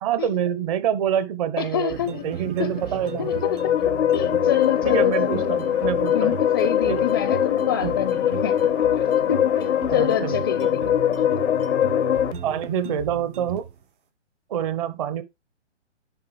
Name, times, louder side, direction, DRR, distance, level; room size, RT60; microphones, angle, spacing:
voice 1, 0.0-3.4 4.8-6.4 6.9-7.0 7.8-7.9 9.9-10.4 12.4-13.6 14.5-15.2, right 9 dB, 30° right, 1.0 m, -26 dB
voice 2, 1.6-2.2 2.6-2.7 3.2-3.6 4.1-5.6 6.1-8.6 9.0-11.2, left 9 dB, 20° left, 0.5 m, -27 dB
sound 1, 1.9-13.8, right 6 dB, 45° right, 4.9 m, -35 dB
sound 2, 2.9-12.3, left 10 dB, 75° left, 0.5 m, -22 dB
sound 3, 6.6-6.9 8.6-9.0 10.6-10.9 12.6-13.0, right 5 dB, 75° right, 1.4 m, -43 dB
10.5 x 4.0 x 4.9 m
figure-of-eight pair, 135°, 36 cm